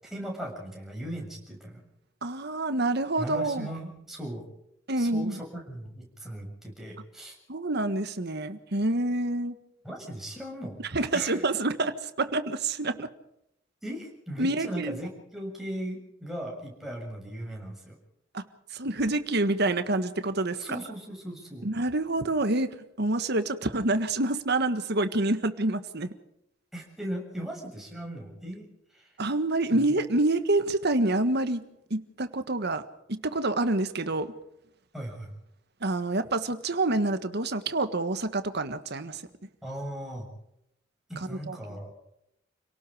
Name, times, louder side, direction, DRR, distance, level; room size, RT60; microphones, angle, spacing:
voice 1, 0.0-1.9 3.2-4.5 5.0-7.3 9.8-10.8 11.1-11.4 13.8-18.0 20.6-21.7 26.7-28.7 28.9-29.1 29.7-30.0 34.9-35.3 39.6-40.3 41.1-41.9, right 1 dB, ahead, -2 dB, 7.1 m, -38 dB
voice 2, 2.2-3.7 4.9-5.4 7.5-9.6 10.9-13.1 14.4-15.0 18.3-18.4 18.7-20.6 21.6-26.1 29.2-31.6 31.9-32.8 33.1-34.3 35.8-39.2 41.3-41.6, right 2 dB, 55° right, 10 dB, 1.6 m, -27 dB
29.5 x 18.5 x 5.0 m, 0.79 s
head